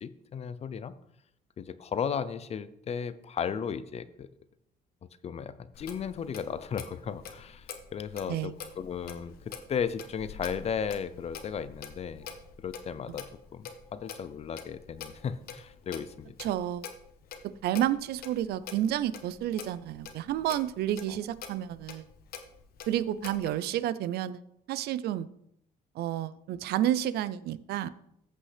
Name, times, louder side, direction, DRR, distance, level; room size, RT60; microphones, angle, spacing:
voice 1, 0.0-0.9 1.6-4.3 5.2-12.3 12.6-16.4 21.1-21.2, left 7 dB, 40° left, 14 dB, 0.6 m, -35 dB
Clock, 5.7-23.5, left 6 dB, 65° left, 1.1 m, -46 dB
voice 2, 16.4-16.9 17.4-22.1 22.9-24.4 24.7-25.3 25.9-27.9, right 12 dB, 70° right, 16 dB, 0.5 m, -30 dB
14.0 x 5.4 x 3.3 m, 0.76 s
cardioid pair, 110°, 17 cm